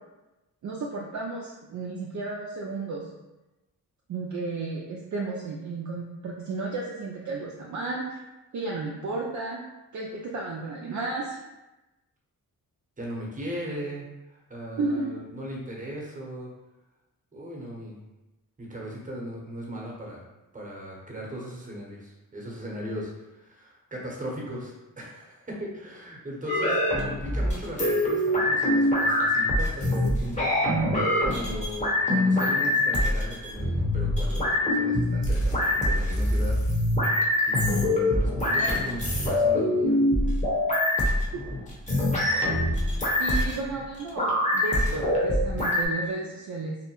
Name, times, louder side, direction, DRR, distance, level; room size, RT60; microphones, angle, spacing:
voice 1, 0.6-3.1 4.1-8.2 8.5-9.6 9.9-11.4 14.8-15.1 42.3-42.5 43.2-46.8, right 3 dB, 50° right, -3 dB, 0.5 m, -33 dB
voice 2, 13.0-16.5 17.3-18.0 18.6-20.2 20.5-30.5 31.2-36.6 37.5-40.1, equal, 20° right, -3 dB, 0.9 m, -38 dB
sound 1, 26.5-45.9, left 1 dB, 20° left, 0.9 m, -24 dB
2.7 x 2.0 x 2.9 m, 1.0 s
cardioid pair, 60°, 37 cm